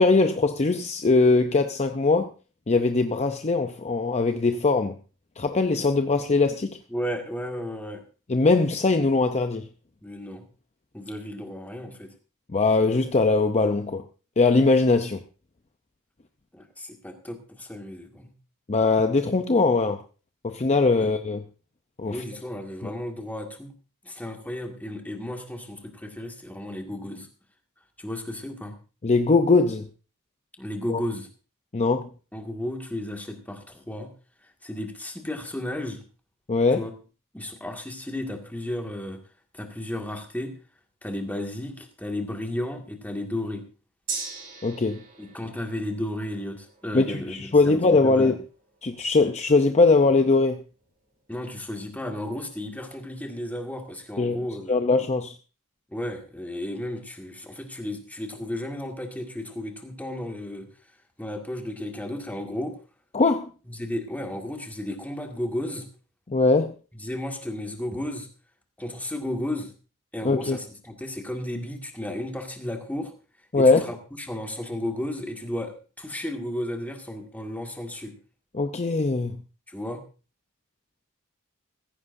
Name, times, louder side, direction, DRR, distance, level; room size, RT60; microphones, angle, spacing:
voice 1, 0.0-2.3 2.7-5.0 5.4-6.8 8.3-9.7 12.5-14.0 14.4-15.2 18.7-20.0 20.4-21.4 22.0-22.2 22.8-22.9 29.0-29.9 30.9-31.0 31.7-32.1 36.5-36.9 44.6-45.0 46.9-48.4 48.8-50.6 54.2-54.4 54.7-55.3 63.1-63.5 66.3-66.7 70.2-70.6 73.5-73.9 78.5-79.4, left 3 dB, 30° left, 0.6 m, -21 dB
voice 2, 6.9-8.0 10.0-10.5 10.9-12.1 16.5-18.3 21.0-21.1 22.1-23.7 24.0-27.3 28.0-28.8 30.6-31.3 32.3-34.1 34.6-36.0 36.8-36.9 37.3-39.2 39.5-40.5 41.0-43.6 45.2-48.4 51.3-54.8 55.9-60.7 61.2-62.7 63.7-65.9 66.9-68.3 68.8-69.7 70.1-73.1 73.6-78.1 79.7-80.0, left 1 dB, 5° left, 2.0 m, -33 dB
Gong, 44.1-51.8 52.2-52.3, right 5 dB, 40° right, 4.6 m, -42 dB
15.0 x 15.0 x 2.6 m
head